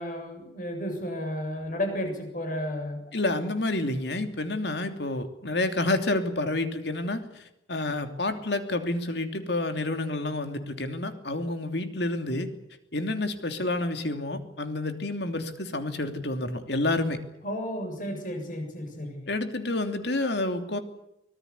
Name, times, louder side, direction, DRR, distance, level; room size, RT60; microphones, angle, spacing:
voice 1, 0.0-3.0 17.4-19.2, left 1 dB, 45° left, 5 dB, 7.3 m, -32 dB
voice 2, 3.1-7.4 7.7-12.5 12.9-17.2 19.3-20.8, left 2 dB, 60° left, 7 dB, 2.9 m, -29 dB
24.5 x 19.5 x 8.4 m, 0.83 s
head